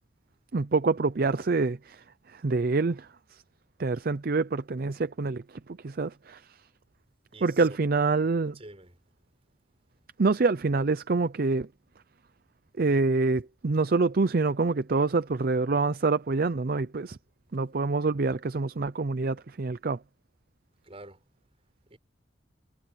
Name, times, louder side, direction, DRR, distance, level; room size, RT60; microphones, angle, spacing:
voice 1, 0.5-3.1 3.8-5.4 5.8-6.4 7.4-8.6 10.2-11.7 12.8-17.2 17.5-20.0, right 3 dB, 50° right, 0.5 m, -26 dB
voice 2, 7.3-7.8 8.5-9.0 20.8-21.2 21.9-22.0, right 2 dB, 30° right, 5.9 m, -47 dB
head